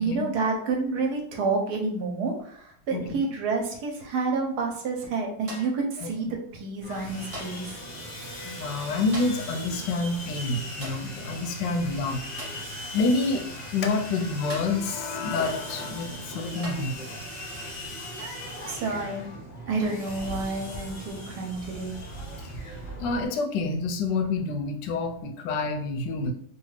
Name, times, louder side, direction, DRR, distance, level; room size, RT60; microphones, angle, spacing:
voice 1, 0.0-7.6 18.7-19.2 19.7-21.9, right 3 dB, 70° right, 1 dB, 1.1 m, -29 dB
voice 2, 2.9-3.2 6.0-6.1 8.4-12.2 12.9-13.5 13.7-17.2 23.0-26.3, left 3 dB, 85° left, 4 dB, 1.2 m, -28 dB
sound 1, 5.5-5.9 7.3-7.7 9.1-9.5 10.8-11.1 12.4-12.7 14.5-14.8 15.9-16.0 16.6-17.0 18.2-18.4 20.0-20.2, equal, 50° right, 0.4 m, -41 dB
Sawing, 6.8-23.3, equal, 55° left, 0.4 m, -38 dB
3.2 x 2.3 x 3.2 m, 0.63 s
omnidirectional pair, 1.9 m